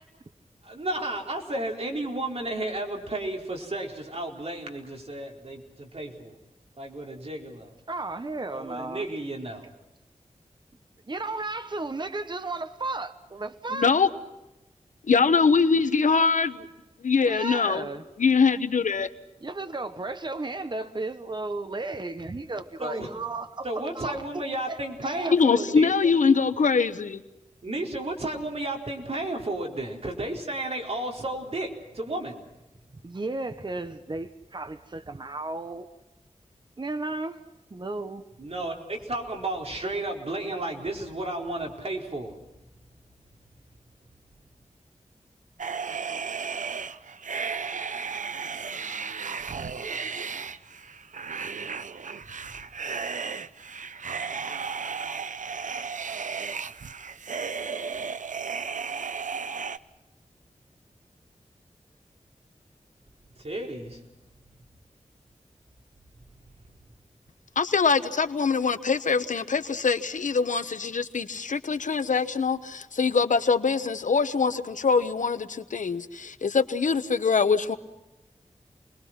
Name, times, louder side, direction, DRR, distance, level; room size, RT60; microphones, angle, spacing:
voice 1, 0.6-6.4 6.8-7.7 8.5-9.7 22.8-23.1 23.6-25.9 27.6-32.4 38.4-42.3 63.4-64.0, right 1 dB, 55° right, 1 dB, 4.5 m, -33 dB
voice 2, 7.9-9.1 11.1-13.9 17.2-18.0 19.4-25.3 33.0-35.9 36.8-37.4 37.7-38.2, right 2 dB, 35° right, 9 dB, 1.1 m, -34 dB
voice 3, 13.7-14.1 15.1-16.7 17.0-17.8 18.2-19.1 25.3-27.2 67.6-77.8, left 5 dB, 85° left, 11 dB, 1.1 m, -23 dB
sound 1, 45.6-59.8, right 5 dB, 85° right, 0.8 m, -34 dB
29.0 x 21.5 x 5.9 m, 0.98 s
wide cardioid pair, 95°, 13 cm